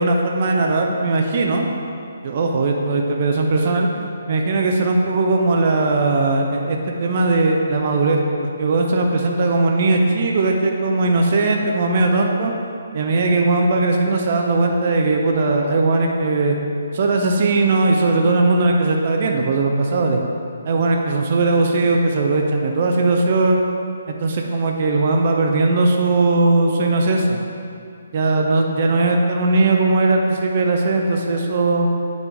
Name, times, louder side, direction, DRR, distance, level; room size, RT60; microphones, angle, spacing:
voice 1, 0.0-1.7 2.2-3.9 4.3-12.5 12.9-16.6 16.9-20.2 20.7-23.7 24.1-27.4 28.1-31.9, right 2 dB, 40° right, 1 dB, 0.6 m, -18 dB
8.4 x 5.2 x 3.5 m, 2.5 s
figure-of-eight pair, 140°, 0 cm